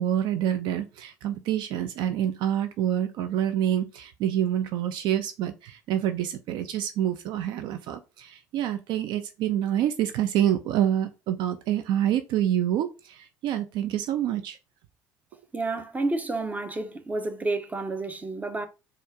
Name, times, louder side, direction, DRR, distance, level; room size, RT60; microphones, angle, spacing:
voice 1, 0.0-14.6, right 10 dB, 60° right, 0.4 m, -27 dB
voice 2, 15.5-18.7, right 2 dB, 15° right, 0.8 m, -30 dB
4.3 x 2.5 x 4.7 m
hypercardioid pair, 60°, 9 cm